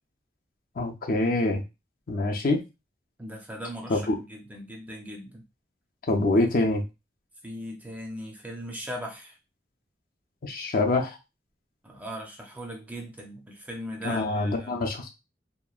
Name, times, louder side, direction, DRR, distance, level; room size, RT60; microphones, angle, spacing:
voice 1, 0.8-1.6 2.1-2.6 3.9-4.2 6.1-6.8 10.4-11.2 14.0-15.1, left 2 dB, 50° left, 3 dB, 0.5 m, -25 dB
voice 2, 3.2-5.4 7.4-9.3 11.8-14.8, equal, 10° right, 1 dB, 0.4 m, -39 dB
2.9 x 2.2 x 2.3 m, 0.25 s
head